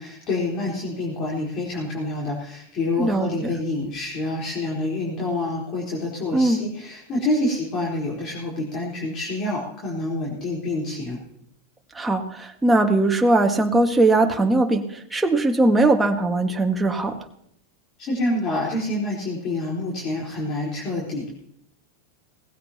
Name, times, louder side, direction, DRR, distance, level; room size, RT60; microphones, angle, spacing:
voice 1, 0.0-11.2 18.0-21.3, left 2 dB, 40° left, -4 dB, 4.1 m, -27 dB
voice 2, 6.3-6.6 12.0-17.2, right 2 dB, 10° right, 2 dB, 1.7 m, -20 dB
19.0 x 15.5 x 2.9 m, 0.72 s
hypercardioid pair, 100°, 0 cm